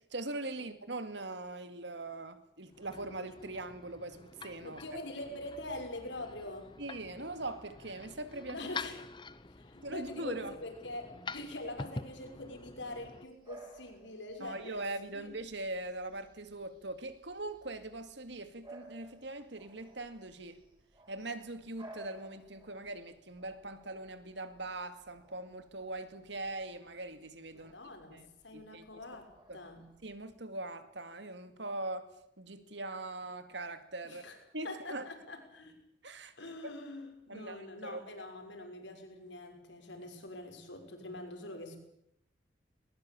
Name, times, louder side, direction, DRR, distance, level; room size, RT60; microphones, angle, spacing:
voice 1, 0.1-4.8 6.8-8.6 9.8-10.5 14.4-20.6 21.1-27.7 28.1-28.3 28.5-28.9 29.5-29.6 30.0-32.1 32.4-34.2 34.5-35.1 36.0-36.3 36.6-36.7 37.3-38.0, right 2 dB, 70° right, 2.3 m, -41 dB
sound 1, 2.7-13.3, left 3 dB, 25° left, 0.9 m, -47 dB
voice 2, 4.6-6.7 8.5-9.1 9.5-14.8 15.1-15.3 27.5-29.9 34.0-34.4 34.6-35.7 36.4-41.8, left 1 dB, 80° left, 6.0 m, -44 dB
Bark / Bird vocalization bird call bird song, 12.8-30.4, right 1 dB, 25° right, 6.6 m, -58 dB
21.5 x 21.0 x 8.9 m
head